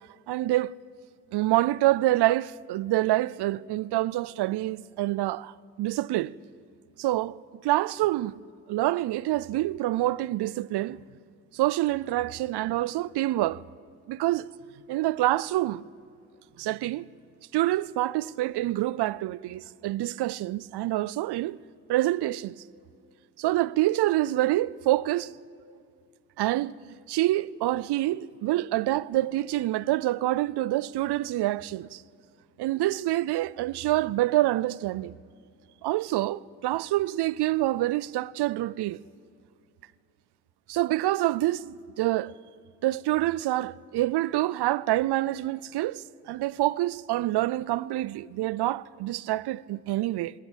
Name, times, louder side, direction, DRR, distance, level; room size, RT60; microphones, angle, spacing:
voice 1, 0.3-0.7 1.3-6.3 7.0-7.4 7.6-8.4 8.7-11.0 11.5-13.6 14.1-14.5 14.9-15.8 16.6-17.1 17.5-21.6 21.9-22.5 23.4-25.3 26.4-32.0 32.6-35.2 35.8-39.0 40.7-42.3 42.8-50.3, right 16 dB, 80° right, 0.6 m, -26 dB
19.5 x 18.5 x 9.0 m
supercardioid pair, 45°, 39 cm